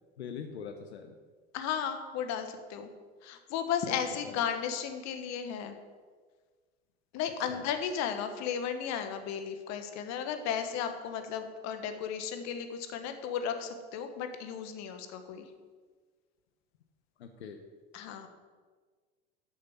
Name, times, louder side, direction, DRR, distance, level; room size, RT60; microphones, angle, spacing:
voice 1, 0.2-1.2 3.8-4.4 7.5-7.6 17.2-17.6, left 7 dB, 90° left, 6 dB, 0.9 m, -43 dB
voice 2, 1.5-2.9 3.2-5.7 7.1-15.5 17.9-18.3, left 8 dB, 55° left, 7 dB, 1.4 m, -34 dB
9.8 x 6.6 x 7.1 m, 1.5 s
hypercardioid pair, 85°, 32 cm